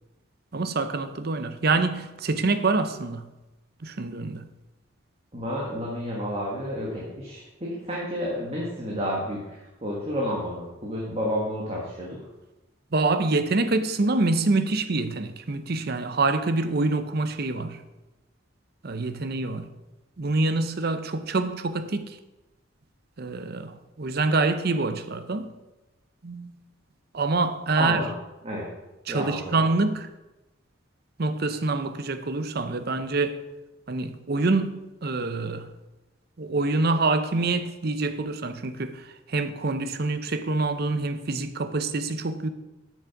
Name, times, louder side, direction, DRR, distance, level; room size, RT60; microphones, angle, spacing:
voice 1, 0.5-3.3 3.8-4.4 12.9-17.8 18.8-19.6 20.2-22.2 23.2-25.5 26.2-26.5 27.1-28.0 29.1-30.1 31.2-33.4 33.9-35.7 36.4-39.0 39.3-42.5, right 3 dB, 50° right, 0.7 m, -26 dB
voice 2, 5.3-12.2 27.7-28.1 28.4-28.7 29.1-29.6, equal, 30° right, 1.6 m, -30 dB
8.6 x 6.3 x 5.9 m
head